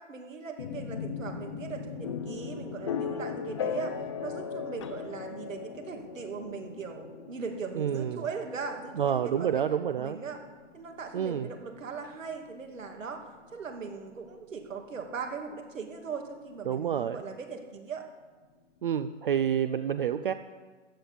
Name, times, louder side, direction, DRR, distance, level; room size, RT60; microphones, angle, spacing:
voice 1, 0.1-3.9 4.2-9.6 10.0-10.4 10.7-13.2 13.5-18.0, right 5 dB, 85° right, 3 dB, 2.7 m, -39 dB
sound 1, 0.6-14.4, left 7 dB, 25° left, 0.5 m, -39 dB
voice 2, 7.7-8.3 9.0-10.2 11.1-11.5 16.7-17.2 18.8-20.3, right 9 dB, 45° right, 12 dB, 0.5 m, -28 dB
15.0 x 10.5 x 7.1 m, 1.4 s
hypercardioid pair, 160°, 38 cm